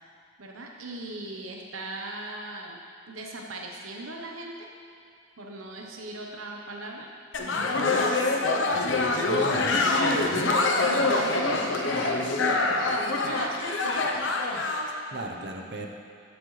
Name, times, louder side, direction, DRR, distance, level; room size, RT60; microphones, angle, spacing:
voice 1, 0.4-2.8 3.1-4.7 5.4-7.1 10.1-10.4 10.8-12.5 12.9-14.2 15.4-15.7, right 2 dB, 85° right, 0 dB, 1.0 m, -39 dB
sound 1, 7.3-14.9, left 2 dB, 65° left, 0.8 m, -25 dB
voice 2, 8.7-10.5 15.1-15.9, right 1 dB, 55° right, 2 dB, 0.8 m, -38 dB
13.5 x 7.5 x 3.3 m, 2.4 s
head